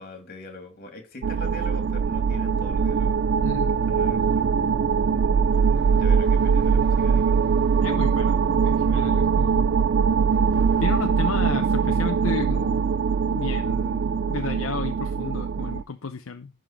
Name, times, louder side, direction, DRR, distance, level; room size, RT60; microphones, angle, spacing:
voice 1, 0.0-3.2 3.9-4.4 5.9-7.5, left 1 dB, 45° left, 2.3 m, -42 dB
sound 1, 1.2-15.8, right 6 dB, 50° right, 0.4 m, -22 dB
voice 2, 3.4-3.7 7.8-9.7 10.8-12.8 13.3-16.5, left 4 dB, 65° left, 0.7 m, -33 dB
11.5 x 3.9 x 5.9 m
head